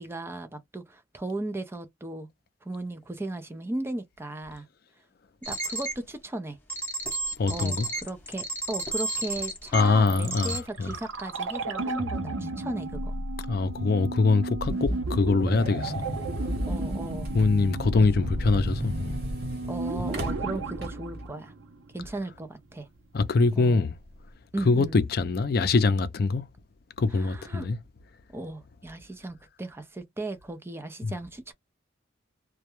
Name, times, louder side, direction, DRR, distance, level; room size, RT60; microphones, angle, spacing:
voice 1, 0.0-2.3 2.6-4.7 5.4-6.6 7.5-13.1 16.7-17.3 17.9-18.3 19.7-21.5 21.9-22.9 23.5-23.8 24.5-25.0 27.1-27.7 28.3-31.5, right 2 dB, 10° right, 0.4 m, -36 dB
sound 1, 5.4-5.9 6.7-9.8 10.3-10.6, right 2 dB, 10° left, 0.8 m, -32 dB
voice 2, 7.4-7.9 9.7-10.9 13.5-15.9 17.3-19.2 23.1-24.0 24.7-26.4 27.0-27.8 31.0-31.1, left 3 dB, 50° left, 0.4 m, -23 dB
sound 2, 10.1-22.1 22.3-22.4, right 2 dB, 90° right, 0.7 m, -32 dB
sound 3, 14.7-21.3, equal, 50° right, 1.1 m, -41 dB
2.2 x 2.1 x 2.9 m
head